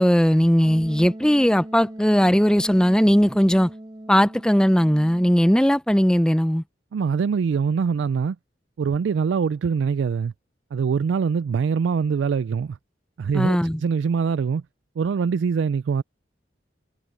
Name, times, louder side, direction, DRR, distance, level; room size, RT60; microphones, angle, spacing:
voice 1, 0.0-3.7 4.1-6.6 13.3-13.8, equal, 5° left, 0.6 m, -18 dB
Wind instrument woodwind instrument, 0.6-5.5, right 1 dB, 25° right, 1.7 m, -40 dB
voice 2, 6.9-8.4 8.8-10.3 10.7-12.8 13.2-14.6 15.0-16.0, right 6 dB, 85° right, 0.3 m, -23 dB
head